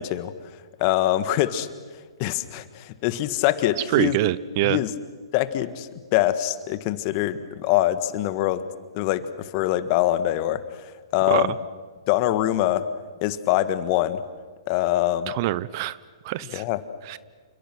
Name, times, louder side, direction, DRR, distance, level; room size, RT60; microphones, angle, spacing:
voice 1, 0.0-1.7 2.2-4.2 4.6-4.9 5.3-8.6 8.9-11.5 12.1-12.9 13.2-14.2 14.7-15.3 16.5-16.8, left 14 dB, 40° left, 12 dB, 1.7 m, -24 dB
voice 2, 3.9-4.8 11.3-11.5 15.3-16.0 16.2-16.6 17.1-17.2, right 16 dB, 45° right, 19 dB, 0.8 m, -24 dB
29.0 x 29.0 x 6.4 m, 1.5 s
hypercardioid pair, 120°, 3 cm